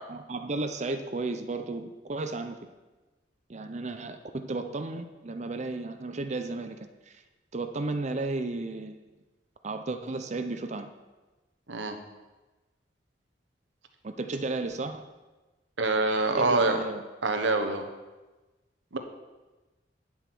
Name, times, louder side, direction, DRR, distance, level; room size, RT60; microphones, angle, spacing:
voice 1, 0.1-2.6 3.5-7.2 7.5-9.0 9.6-10.9 14.0-15.1 16.3-17.0, right 2 dB, 40° right, 8 dB, 0.6 m, -34 dB
voice 2, 15.8-16.8 17.2-17.9 18.9-19.0, right 3 dB, 80° right, 6 dB, 1.1 m, -25 dB
9.6 x 8.1 x 6.1 m, 1.2 s
head